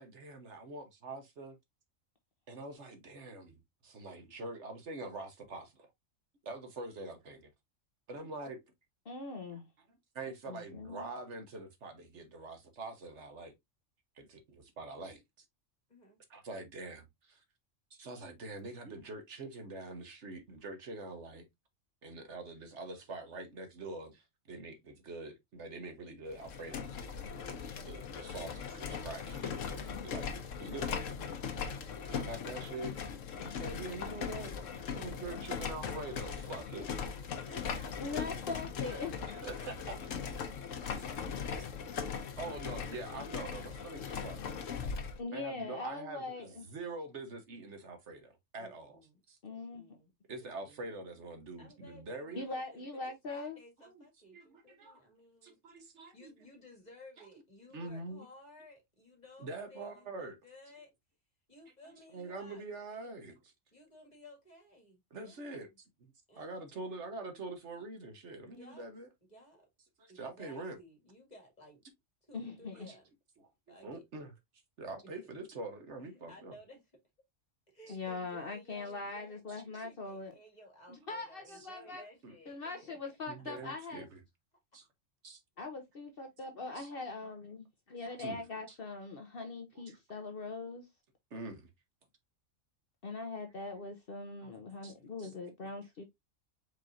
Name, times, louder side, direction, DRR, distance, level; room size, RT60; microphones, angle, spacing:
voice 1, 0.0-1.6 2.5-5.9 6.4-7.5 8.1-8.6 9.5-9.6 9.9-13.5 14.1-15.4 16.3-17.4 17.9-21.4 22.0-26.9 27.8-30.3 30.6-31.0 32.0-33.0 33.4-37.0 38.9-40.0 41.0-41.1 41.5-41.8 42.4-44.4 45.3-49.0 49.3-49.4 50.3-52.4 53.8-54.0 54.3-55.0 55.4-56.5 57.7-58.2 59.4-60.4 61.8-63.5 65.1-69.1 70.0-70.8 72.9-73.0 73.4-73.5 73.8-74.3 74.8-76.5 77.9-78.0 79.5-79.6 81.6-82.0 82.2-82.4 83.3-84.2 84.7-84.9 85.2-85.4 86.7-86.9 88.2-88.4 88.7-88.8 89.7-90.0 91.3-91.7 94.4-94.5 94.8-94.9 95.2-95.3, right 2 dB, 65° right, 1.4 m, -45 dB
voice 2, 9.0-9.7 10.5-11.1 37.9-39.1 45.2-46.6 49.4-49.8 52.4-53.6 72.3-72.9 77.9-80.3 80.9-82.0 82.5-84.1 85.6-90.9 93.0-96.0, left 3 dB, 50° left, 1.0 m, -41 dB
sound 1, 26.3-45.2, left 6 dB, 85° left, 1.2 m, -39 dB
voice 3, 37.5-38.3 39.4-39.9 45.2-45.9 48.6-49.2 49.5-50.1 50.4-50.9 51.6-55.6 56.1-60.9 61.5-63.2 63.7-65.7 66.3-67.0 68.6-68.9 69.3-69.7 70.1-71.8 72.2-73.1 73.7-74.0 76.1-76.8 77.7-79.4 79.8-83.0, left 1 dB, 35° left, 2.3 m, -57 dB
4.8 x 4.4 x 2.5 m
omnidirectional pair, 1.3 m